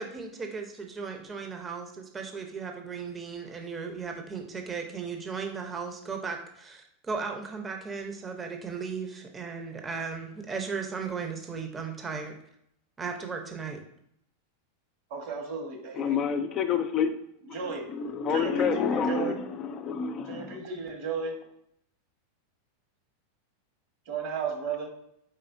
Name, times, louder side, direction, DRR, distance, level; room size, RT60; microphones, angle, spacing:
voice 1, 0.0-12.3 13.0-13.8, right 5 dB, 20° right, 3 dB, 0.8 m, -36 dB
voice 2, 15.1-16.2 17.5-17.9 18.3-19.3 20.3-21.4 24.1-24.9, right 5 dB, 60° right, 3 dB, 1.4 m, -34 dB
voice 3, 16.0-17.1 17.4-20.6, left 6 dB, 40° left, 7 dB, 0.5 m, -28 dB
4.3 x 4.1 x 2.6 m, 0.73 s
hypercardioid pair, 115°, 0 cm